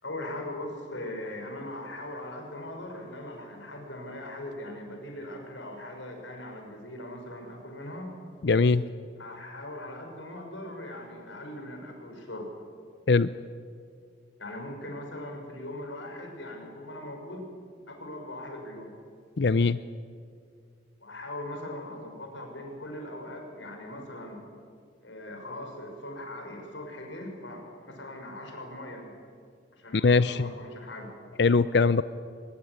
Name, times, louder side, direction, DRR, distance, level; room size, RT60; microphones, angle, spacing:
voice 1, 0.0-8.2 9.2-12.5 14.4-17.5 17.9-18.9 21.0-24.4 25.0-29.1 29.7-31.1, left 1 dB, 80° left, 3 dB, 6.0 m, -40 dB
voice 2, 8.4-8.8 13.1-13.3 19.4-19.8 30.0-30.5 31.4-32.0, left 4 dB, 60° left, 14 dB, 0.6 m, -21 dB
23.5 x 21.5 x 9.6 m, 2.2 s
head